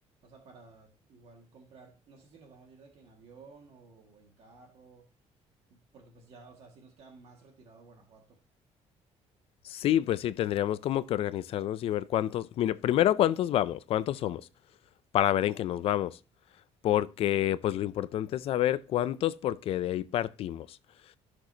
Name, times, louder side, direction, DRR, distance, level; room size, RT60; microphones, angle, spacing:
voice 1, 0.2-5.1 5.7-8.4, right 4 dB, 55° right, 1.9 m, -55 dB
voice 2, 9.6-14.4 15.1-16.2 16.8-20.8, left 12 dB, 55° left, 0.4 m, -28 dB
14.5 x 6.2 x 2.8 m
cardioid pair, 165°, 12 cm